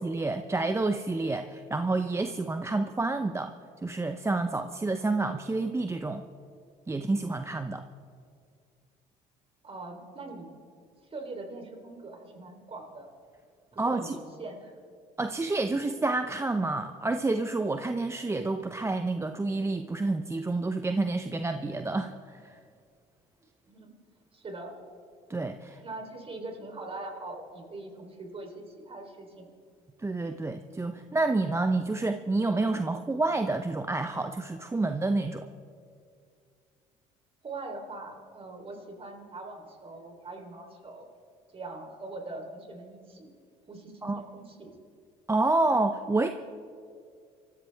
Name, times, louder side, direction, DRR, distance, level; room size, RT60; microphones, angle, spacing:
voice 1, 0.0-3.5 3.8-6.2 6.9-7.8 13.8-14.2 15.2-22.6 25.3-25.8 30.0-35.5 44.0-44.2 45.3-46.3, right 2 dB, 15° right, 7 dB, 0.8 m, -29 dB
voice 2, 9.6-10.5 11.1-13.1 13.7-14.7 23.7-23.9 24.3-24.7 25.7-29.5 37.4-41.1 41.5-43.4 43.7-44.7, right 2 dB, 35° right, 3 dB, 3.7 m, -42 dB
25.0 x 14.5 x 3.5 m, 2.3 s
hypercardioid pair, 70°, 17 cm